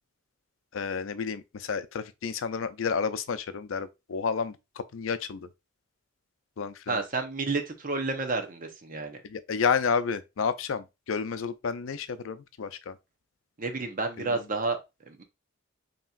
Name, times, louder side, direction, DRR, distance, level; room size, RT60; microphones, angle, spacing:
voice 1, 0.7-4.6 4.9-5.5 6.6-7.0 9.2-12.9 14.2-14.4, left 6 dB, 85° left, 0.5 m, -30 dB
voice 2, 6.9-9.2 13.6-14.8 15.1-15.2, right 3 dB, 45° right, 0.8 m, -30 dB
5.5 x 3.0 x 2.4 m
head